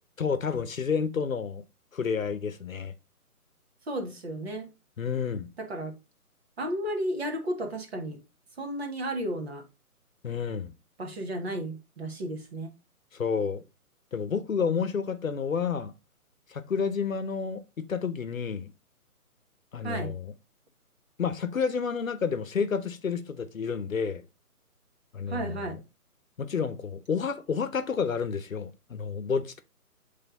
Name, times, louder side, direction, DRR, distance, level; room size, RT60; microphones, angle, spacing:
voice 1, 0.2-1.6 1.9-2.9 5.0-5.5 10.2-10.7 13.1-13.6 14.1-15.9 16.5-18.7 19.7-20.3 21.2-24.2 25.1-25.6 26.4-29.6, left 6 dB, 60° left, 0.9 m, -30 dB
voice 2, 3.9-4.7 5.6-6.0 6.6-8.2 8.6-9.6 11.0-12.7 19.8-20.2 25.3-25.8, right 1 dB, 45° right, 1.6 m, -33 dB
7.9 x 3.4 x 3.9 m
figure-of-eight pair, 145°, 45 cm